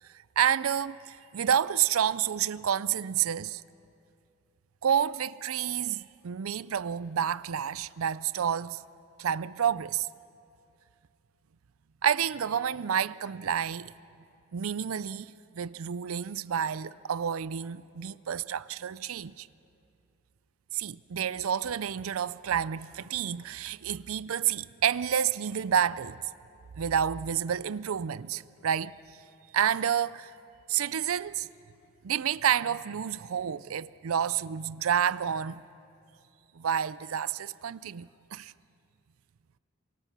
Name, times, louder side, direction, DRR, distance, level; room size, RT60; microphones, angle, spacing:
voice 1, 0.4-3.6 4.8-8.8 9.2-10.1 12.0-13.9 14.5-19.5 20.7-26.2 26.8-29.0 29.5-30.3 30.7-31.5 32.0-35.6 36.6-38.5, right 8 dB, 80° right, 0.5 m, -29 dB
27.5 x 24.0 x 6.0 m
head